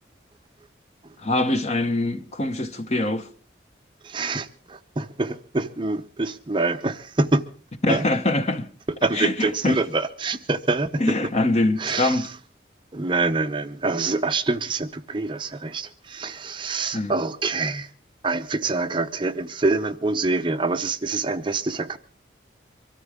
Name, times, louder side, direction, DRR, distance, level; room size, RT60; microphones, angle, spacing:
voice 1, 1.2-3.3 7.8-8.7 9.1-9.8 11.0-12.3 16.9-17.1, left 2 dB, 35° left, 1.1 m, -23 dB
voice 2, 4.0-7.4 7.9-8.1 9.0-11.0 11.8-12.3 12.9-17.9 18.2-22.0, right 3 dB, 25° right, 0.7 m, -25 dB
24.0 x 13.5 x 3.6 m
head